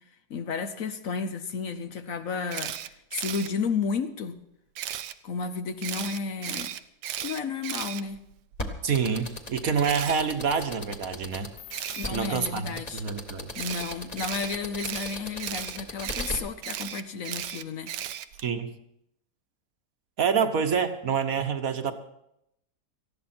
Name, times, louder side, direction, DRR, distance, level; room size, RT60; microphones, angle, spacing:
voice 1, 0.3-2.8 3.1-4.4 5.2-6.7 7.2-8.2 11.9-13.0 13.6-17.9, left 5 dB, 60° left, 10 dB, 1.1 m, -32 dB
Camera, 2.5-3.5 4.8-5.1 5.8-8.6 9.8-10.2 11.7-12.1 13.5-18.5, right 11 dB, 90° right, 1.3 m, -35 dB
sound 1, 8.6-16.4, left 2 dB, 25° left, 1.4 m, -36 dB
voice 2, 8.8-11.5 12.1-13.5 18.4-18.7 20.2-21.9, right 6 dB, 60° right, 8 dB, 1.4 m, -27 dB
19.0 x 14.5 x 4.3 m, 0.79 s
omnidirectional pair, 1.8 m